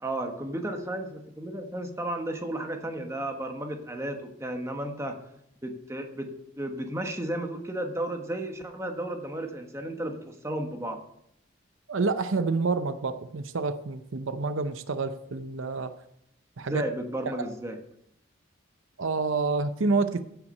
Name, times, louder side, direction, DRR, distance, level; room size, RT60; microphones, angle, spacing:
voice 1, 0.0-5.2 5.6-6.3 6.6-11.0 16.7-17.8, right 1 dB, 15° right, 4 dB, 1.2 m, -33 dB
voice 2, 11.9-15.9 16.6-16.9 19.0-20.2, right 3 dB, 75° right, 10 dB, 0.6 m, -28 dB
16.0 x 5.8 x 5.4 m, 0.75 s
head